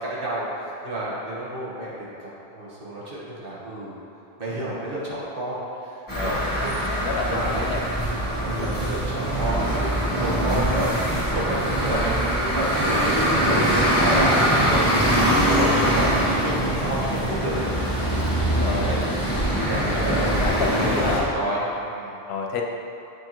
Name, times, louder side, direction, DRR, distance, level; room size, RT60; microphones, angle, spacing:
voice 1, 0.0-0.4 0.8-4.0 4.4-5.6 6.2-6.4 7.2-7.7 8.0-10.9 11.2-15.1 15.5-17.6 18.7-19.0 19.5-22.2, right 1 dB, 60° right, -7 dB, 1.4 m, -30 dB
voice 2, 6.1-6.5 6.8-7.8 18.4-19.0 19.5-21.3 22.3-22.6, left 4 dB, 80° left, 1 dB, 0.9 m, -30 dB
sound 1, 6.1-21.2, right 1 dB, 20° left, 1.5 m, -23 dB
7.6 x 4.5 x 3.0 m, 2.9 s
omnidirectional pair, 1.1 m